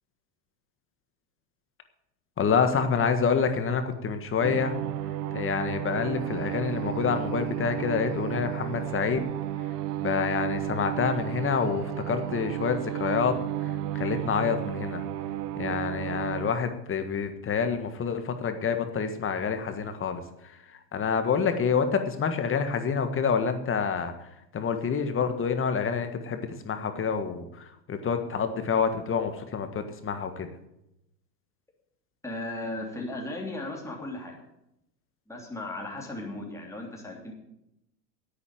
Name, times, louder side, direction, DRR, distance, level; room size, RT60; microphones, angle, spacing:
voice 1, 2.4-4.8 5.3-9.2 10.0-13.4 13.9-15.0 15.6-20.2 20.9-24.1 24.5-30.5, left 6 dB, 25° left, 8 dB, 1.6 m, -27 dB
sound 1, 4.4-16.5, right 12 dB, 65° right, 1.0 m, -33 dB
voice 2, 32.2-34.4 35.3-37.3, left 2 dB, 5° left, -1 dB, 3.1 m, -36 dB
10.0 x 8.6 x 8.8 m, 0.84 s
hypercardioid pair, 105°, 50 cm